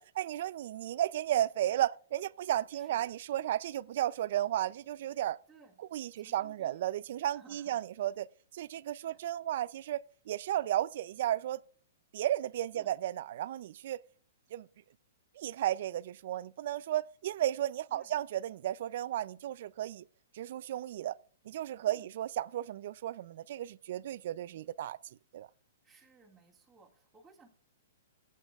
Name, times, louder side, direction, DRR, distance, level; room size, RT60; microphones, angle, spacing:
voice 1, 0.0-5.4 5.9-8.3 8.5-11.6 12.1-14.0 14.5-14.7 15.4-20.0 20.3-21.2 21.5-25.0 25.3-25.5, right 12 dB, 55° right, 0.4 m, -34 dB
voice 2, 2.7-3.1 5.5-5.8 6.2-6.8 7.3-7.9 9.1-9.2 12.7-12.9 17.9-18.1 21.9-22.1 25.8-27.5, right 3 dB, 10° right, 2.1 m, -60 dB
20.0 x 8.3 x 2.4 m
hypercardioid pair, 145°, 0 cm